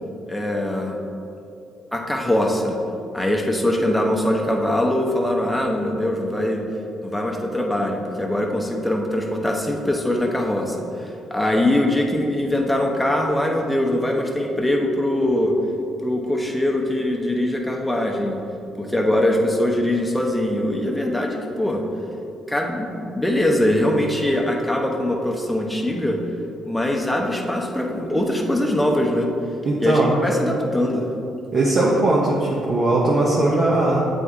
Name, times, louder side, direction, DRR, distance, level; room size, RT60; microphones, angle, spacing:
voice 1, 0.3-1.0 1.9-2.8 3.1-6.6 7.0-15.5 16.0-18.4 18.8-21.8 22.5-26.2 26.6-29.3 29.8-31.1, left 1 dB, 5° left, 0 dB, 0.8 m, -22 dB
voice 2, 29.6-30.2 31.5-34.0, right 2 dB, 50° right, -5 dB, 0.8 m, -19 dB
7.6 x 3.5 x 3.6 m, 2.8 s
supercardioid pair, 65°, 0 cm